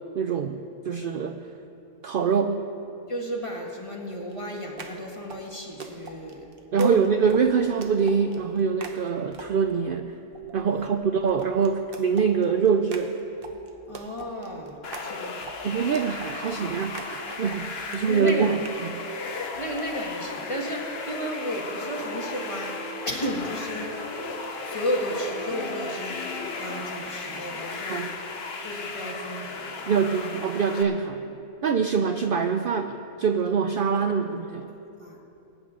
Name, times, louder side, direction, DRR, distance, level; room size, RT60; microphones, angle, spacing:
voice 1, 0.1-1.4 2.0-2.6 6.7-10.0 10.5-13.1 15.6-18.6 18.8-19.0 27.9-28.1 29.9-31.3 31.6-34.7, right 6 dB, 70° right, 6 dB, 0.5 m, -24 dB
voice 2, 3.1-6.4 6.8-7.1 10.7-10.9 13.9-15.3 18.0-18.5 19.6-22.8 23.0-23.9 24.6-28.1 28.6-29.9 33.9-34.1 35.0-35.2, equal, 20° left, -1 dB, 1.6 m, -33 dB
sound 1, 4.3-9.8 10.3-18.8 19.5-19.8, right 4 dB, 45° right, 1.0 m, -44 dB
sound 2, 14.8-30.8, left 4 dB, 50° left, 1.1 m, -36 dB
sound 3, 20.8-26.8, left 1 dB, 70° left, 1.9 m, -41 dB
21.0 x 9.7 x 3.8 m, 2.9 s
omnidirectional pair, 1.5 m